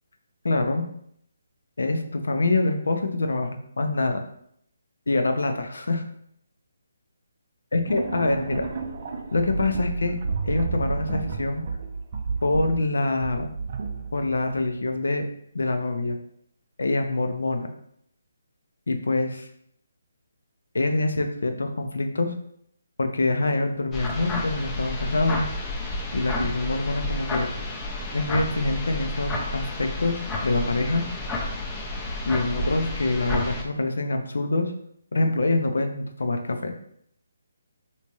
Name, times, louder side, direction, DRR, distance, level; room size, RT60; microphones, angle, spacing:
voice 1, 0.4-0.8 1.8-4.2 5.1-6.0 7.7-8.7 9.3-10.2 10.4-11.6 12.4-13.5 14.1-15.3 15.5-16.2 16.8-17.7 18.9-19.5 20.7-22.3 23.0-25.5 26.1-27.5 28.1-31.0 32.3-34.7 35.1-36.7, left 2 dB, 75° left, 6 dB, 0.5 m, -25 dB
sound 1, 7.9-14.8, right 4 dB, 45° right, 0.4 m, -31 dB
sound 2, 23.9-33.6, left 2 dB, 15° left, 0.5 m, -31 dB
3.4 x 2.8 x 3.0 m, 0.69 s
figure-of-eight pair, 155°, 0 cm